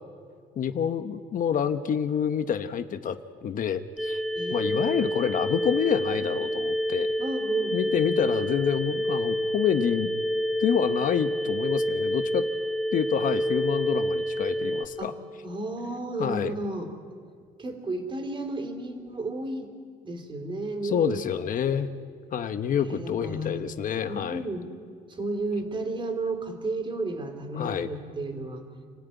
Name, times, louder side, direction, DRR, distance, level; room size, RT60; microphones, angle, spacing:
voice 1, 0.6-4.2 4.5-7.2 7.7-10.1 10.6-12.5 12.9-15.1 16.2-16.5 20.8-21.9 22.3-24.4 27.5-27.9, left 8 dB, 50° left, 9 dB, 1.1 m, -27 dB
sound 1, 4.0-14.9, equal, ahead, 0.9 m, -28 dB
voice 2, 4.4-5.1 7.2-8.2 15.0-15.1 15.4-16.9 17.6-19.7 20.0-21.8 22.8-23.6 24.1-24.7 25.1-28.6, right 2 dB, 30° right, 3 dB, 3.9 m, -33 dB
28.5 x 14.0 x 9.4 m, 2.2 s
cardioid pair, 110°, 17 cm